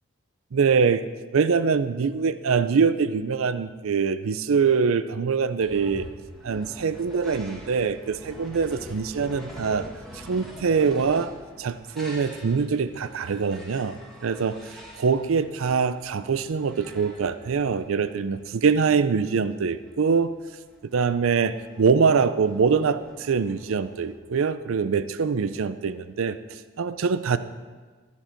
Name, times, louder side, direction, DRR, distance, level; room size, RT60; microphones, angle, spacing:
voice 1, 0.5-1.0 1.3-6.1 6.4-9.9 10.1-11.3 11.6-14.6 15.0-20.3 20.9-27.4, right 5 dB, 75° right, 13 dB, 0.5 m, -24 dB
sound 1, 5.6-24.1, equal, ahead, 1.7 m, -45 dB
14.0 x 7.2 x 4.5 m, 1.4 s
head